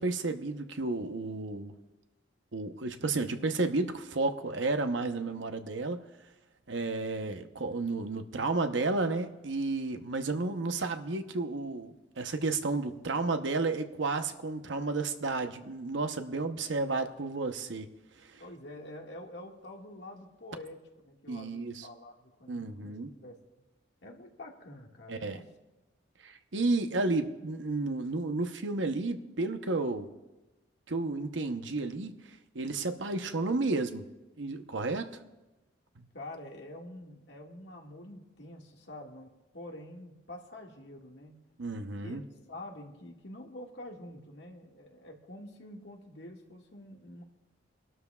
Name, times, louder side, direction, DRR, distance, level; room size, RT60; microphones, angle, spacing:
voice 1, 0.0-1.7 2.5-6.0 6.7-17.9 18.2-18.4 21.3-21.9 22.5-23.1 25.1-25.4 26.2-30.1 30.9-34.0 34.4-35.1 36.0-36.1 41.6-42.2, right 3 dB, 80° right, 7 dB, 0.9 m, -32 dB
voice 2, 18.4-23.4 24.0-25.5 36.1-41.4 42.0-42.2 42.5-47.2, left 1 dB, 65° left, 0 dB, 1.9 m, -47 dB
26.5 x 12.5 x 2.4 m, 1.1 s
head